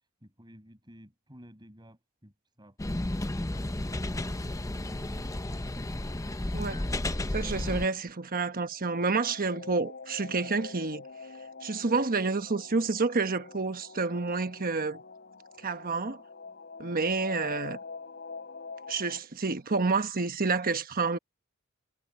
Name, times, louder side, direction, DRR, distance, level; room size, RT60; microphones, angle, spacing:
voice 1, 0.0-3.7 4.1-5.3, equal, 20° right, 6.1 m, -53 dB
sound 1, 2.8-7.9, left 1 dB, 15° left, 0.7 m, -32 dB
voice 2, 7.3-11.1 11.6-15.0 15.6-16.2 16.8-17.8 18.9-21.2, right 4 dB, 40° right, 1.1 m, -29 dB
sound 2, 8.5-19.2, left 4 dB, 50° left, 7.3 m, -45 dB
head